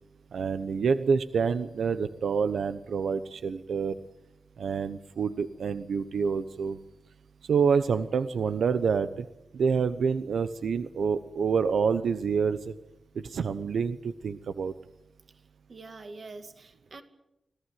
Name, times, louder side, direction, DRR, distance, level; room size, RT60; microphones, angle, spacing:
voice 1, 0.3-4.0 4.6-6.8 7.5-9.3 9.5-12.7 13.1-14.7, right 6 dB, 85° right, 11 dB, 0.9 m, -27 dB
voice 2, 15.7-17.0, right 3 dB, 45° right, 7 dB, 2.5 m, -45 dB
26.0 x 17.5 x 9.3 m, 0.90 s
wide cardioid pair, 160°, 0 cm